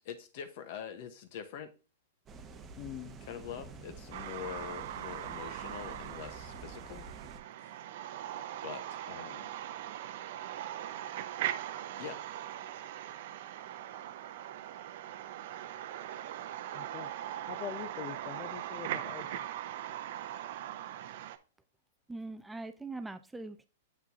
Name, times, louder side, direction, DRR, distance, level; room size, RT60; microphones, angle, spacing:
voice 1, 0.0-1.7 3.2-7.1 7.6-7.8 8.6-9.5 12.0-12.2, left 8 dB, 55° left, 1.2 m, -44 dB
sound 1, 2.3-7.4, right 4 dB, 25° right, 0.9 m, -49 dB
voice 2, 2.8-3.2 16.7-17.1 17.5-19.4, left 10 dB, 40° left, 0.6 m, -43 dB
sound 2, 4.1-21.4, right 12 dB, 60° right, 0.7 m, -40 dB
voice 3, 22.1-23.7, right 3 dB, 5° right, 0.4 m, -42 dB
7.5 x 5.9 x 2.8 m
hypercardioid pair, 115°, 0 cm